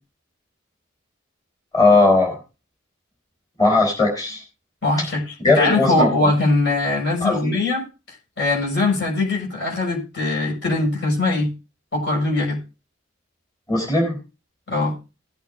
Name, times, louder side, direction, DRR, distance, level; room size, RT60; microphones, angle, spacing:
voice 1, 1.7-2.4 3.6-4.4 5.4-6.1 7.2-7.6 13.7-14.2, left 3 dB, 20° left, 1 dB, 4.1 m, -18 dB
voice 2, 4.8-7.9 8.4-11.5 11.9-12.6 14.7-14.9, left 2 dB, 55° left, -3 dB, 6.1 m, -21 dB
18.5 x 8.5 x 2.7 m, 0.30 s
head